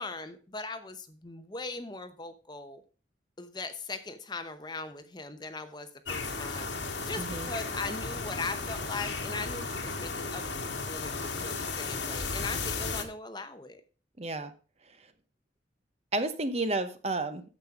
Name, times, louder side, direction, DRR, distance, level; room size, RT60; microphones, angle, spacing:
voice 1, 0.0-2.8 3.4-13.8, left 3 dB, 25° left, 10 dB, 0.8 m, -40 dB
sound 1, 6.1-13.0, left 4 dB, 90° left, 1.8 m, -34 dB
voice 2, 7.2-7.5 14.2-14.5 16.1-17.4, right 2 dB, 35° right, 10 dB, 0.9 m, -31 dB
9.5 x 7.4 x 4.9 m, 0.36 s
head